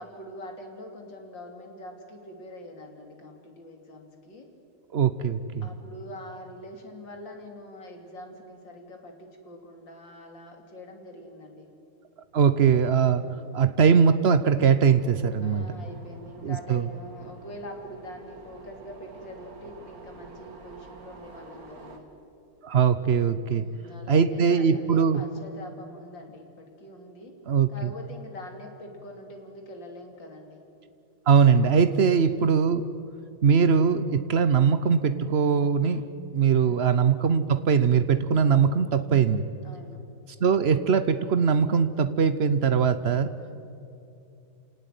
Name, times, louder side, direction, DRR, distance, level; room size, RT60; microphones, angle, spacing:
voice 1, 0.0-4.5 5.6-11.7 13.1-13.7 15.4-22.1 23.5-27.4 27.7-30.6 36.6-36.9 39.6-40.0 43.4-43.5, left 1 dB, 60° left, 3 dB, 3.7 m, -44 dB
voice 2, 4.9-5.7 12.3-13.2 13.5-15.7 16.4-16.8 22.6-23.6 24.1-25.2 27.5-27.9 31.3-32.8 33.4-36.0 36.3-39.4 40.4-43.3, right 6 dB, 80° right, 12 dB, 0.5 m, -21 dB
sound 1, 14.6-22.0, right 3 dB, 45° right, 2.3 m, -49 dB
29.0 x 18.0 x 9.4 m, 2.7 s
omnidirectional pair, 2.2 m